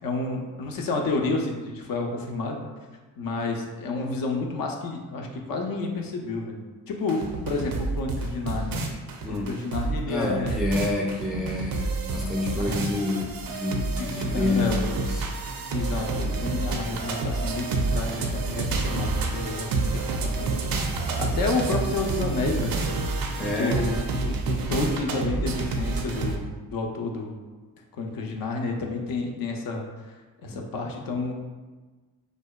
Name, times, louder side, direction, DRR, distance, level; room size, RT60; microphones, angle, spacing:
voice 1, 0.0-2.7 3.2-6.6 6.9-8.8 9.3-10.6 12.6-12.9 14.0-14.9 15.7-19.7 20.1-20.6 21.2-22.8 23.4-27.3 28.0-29.8 30.4-31.3, left 3 dB, 60° left, 2 dB, 0.5 m, -30 dB
sound 1, 7.1-26.4, right 3 dB, 65° right, 0.5 m, -29 dB
voice 2, 9.2-9.6 10.1-15.3 23.4-23.9 30.5-30.6, left 2 dB, ahead, -2 dB, 0.3 m, -28 dB
2.6 x 2.1 x 2.2 m, 1.3 s
cardioid pair, 65°, 38 cm